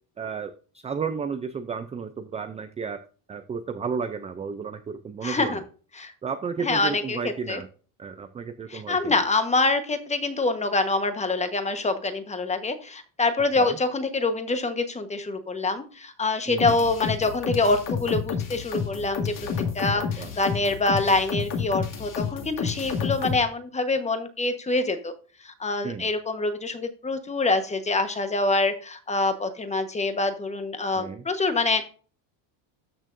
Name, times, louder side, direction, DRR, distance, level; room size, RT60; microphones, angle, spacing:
voice 1, 0.2-0.5 0.8-3.0 3.3-5.6 6.2-7.7 8.0-9.2 13.6-13.8 16.5-16.8 20.2-20.3 25.8-26.1 30.9-31.2, right 6 dB, 15° right, 8 dB, 0.3 m, -32 dB
voice 2, 5.2-5.6 5.9-6.1 6.6-7.2 7.5-7.6 8.7-19.3 19.7-25.1 25.4-31.9, left 3 dB, 15° left, 8 dB, 1.1 m, -25 dB
sound 1, 16.6-23.4, left 6 dB, 40° left, 2.2 m, -30 dB
13.0 x 6.3 x 2.6 m, 0.38 s
cardioid pair, 150°, 49 cm